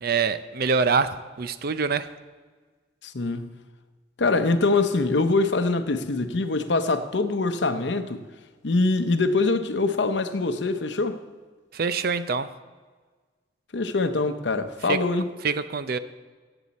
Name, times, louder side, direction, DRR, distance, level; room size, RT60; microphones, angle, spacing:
voice 1, 0.0-2.1 11.7-12.5 14.9-15.0 15.4-16.0, right 5 dB, 55° right, 0.5 m, -25 dB
voice 2, 3.0-3.5 4.2-8.2 8.6-11.2 13.7-15.3, left 3 dB, 70° left, 0.8 m, -24 dB
16.5 x 8.1 x 4.2 m
head